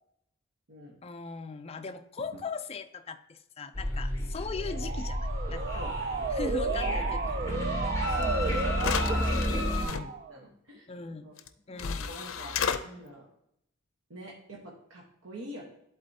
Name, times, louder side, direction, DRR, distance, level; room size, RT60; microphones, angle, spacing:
voice 1, 1.0-5.2 5.5-5.8 6.3-7.4 9.8-10.2 10.4-10.6 10.9-11.3 11.7-12.2 12.8-12.9, left 4 dB, 30° left, 8 dB, 0.4 m, -39 dB
sound 1, 3.7-9.9, left 1 dB, 15° left, 1.3 m, -31 dB
Motor vehicle (road) / Siren, 4.5-10.4, right 5 dB, 40° right, 0.4 m, -34 dB
sound 2, 8.2-8.3 8.7-10.0 11.4-11.5 11.8-12.8, left 7 dB, 90° left, 0.5 m, -33 dB
voice 2, 8.2-8.5 8.8-10.0 10.3-10.9 11.2-11.3 12.1-12.6 12.8-13.3 14.1-15.6, right 1 dB, 75° right, -3 dB, 1.2 m, -43 dB
11.0 x 3.9 x 2.8 m, 0.76 s
head